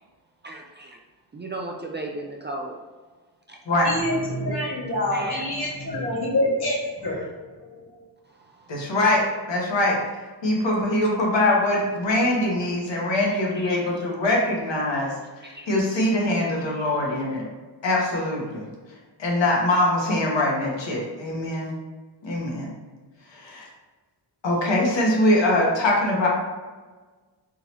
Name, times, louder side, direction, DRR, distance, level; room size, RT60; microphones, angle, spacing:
voice 1, 0.4-0.9 1.3-2.7 5.1-5.4 8.3-8.8 11.0-11.2 13.5-14.1 15.4-15.7, right 2 dB, 25° right, -1 dB, 0.4 m, -36 dB
voice 2, 3.8-7.8, left 1 dB, 60° left, -5 dB, 1.4 m, -26 dB
voice 3, 8.7-10.0 10.4-17.5 17.8-18.6 19.2-21.7 22.2-22.7 23.3-23.7 24.4-26.3, left 1 dB, 75° left, -3 dB, 1.1 m, -23 dB
3.7 x 2.8 x 3.0 m, 1.3 s
wide cardioid pair, 90°, 44 cm